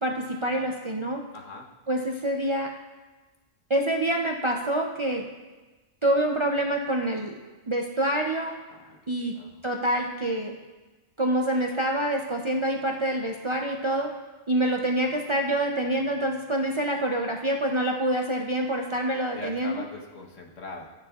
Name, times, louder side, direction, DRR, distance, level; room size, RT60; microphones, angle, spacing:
voice 1, 0.0-1.2 1.9-2.7 3.7-5.2 6.0-7.3 7.7-8.6 9.1-9.3 9.6-10.6 11.2-14.1 14.5-19.8, right 1 dB, 45° right, 1 dB, 0.4 m, -26 dB
voice 2, 1.3-1.7 8.7-9.0 9.3-9.6 19.3-20.9, left 3 dB, 90° left, 0 dB, 1.5 m, -41 dB
14.5 x 9.0 x 2.4 m, 1.2 s
omnidirectional pair, 1.3 m